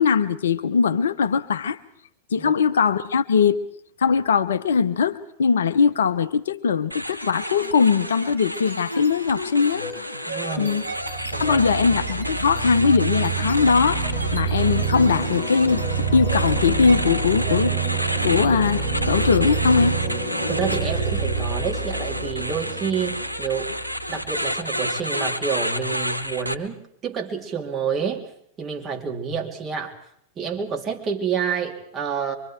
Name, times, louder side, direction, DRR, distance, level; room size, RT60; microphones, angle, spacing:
voice 1, 0.0-1.8 2.3-3.6 4.0-9.8 10.6-10.8 11.4-14.0 14.3-15.8 16.1-17.7 18.2-20.0, left 5 dB, 65° left, 0.8 m, -20 dB
sound 1, 6.9-26.5, equal, 85° left, 1.0 m, -30 dB
sound 2, 7.1-7.6 8.0-24.6, right 4 dB, 85° right, 3.8 m, -28 dB
voice 2, 10.3-10.8 11.3-11.6 20.5-23.7 24.1-26.8 27.0-28.2 28.6-29.9 30.4-32.3, right 6 dB, 25° right, 2.8 m, -28 dB
24.5 x 24.0 x 4.5 m
figure-of-eight pair, 90°, 0 cm